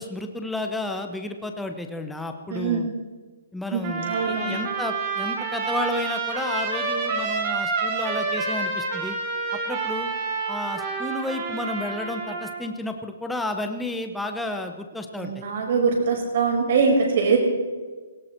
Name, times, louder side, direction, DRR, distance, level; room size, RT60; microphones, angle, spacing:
voice 1, 0.0-2.9 3.5-4.2 4.5-9.2 9.7-10.1 10.5-15.3, left 1 dB, 5° left, 5 dB, 0.9 m, -31 dB
voice 2, 2.5-2.9 3.7-4.6 15.2-17.4, right 5 dB, 50° right, 0 dB, 5.6 m, -23 dB
Trumpet, 3.8-12.6, right 4 dB, 30° right, 3.4 m, -28 dB
18.5 x 16.5 x 4.5 m, 1.4 s
hypercardioid pair, 165°, 0 cm